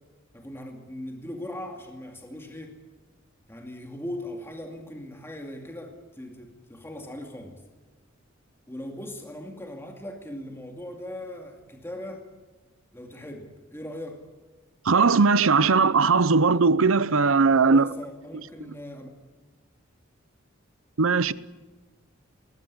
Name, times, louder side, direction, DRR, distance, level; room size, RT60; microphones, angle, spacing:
voice 1, 0.3-2.8 3.5-7.6 8.7-12.2 12.9-14.3 17.6-19.1, left 1 dB, 10° left, 2.4 m, -39 dB
voice 2, 14.8-17.9 21.0-21.3, right 4 dB, 75° right, 0.7 m, -19 dB
21.5 x 20.0 x 9.8 m
head